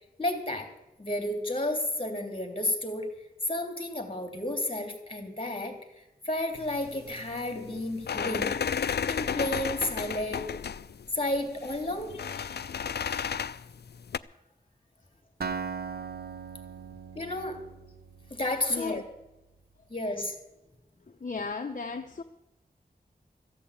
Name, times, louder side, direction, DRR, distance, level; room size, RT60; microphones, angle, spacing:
voice 1, 0.2-0.7 1.0-3.1 3.5-5.7 6.2-8.5 9.1-10.4 11.1-12.6 17.1-17.6 18.3-19.0 19.9-20.3, left 1 dB, 35° left, 3.2 m, -32 dB
sound 1, 6.5-14.2, left 7 dB, 85° left, 0.4 m, -33 dB
Acoustic guitar, 15.4-19.3, right 5 dB, 70° right, 1.0 m, -39 dB
voice 2, 18.7-19.0 21.2-22.2, left 4 dB, 55° left, 0.8 m, -35 dB
14.5 x 8.4 x 8.6 m
wide cardioid pair, 55°, 17 cm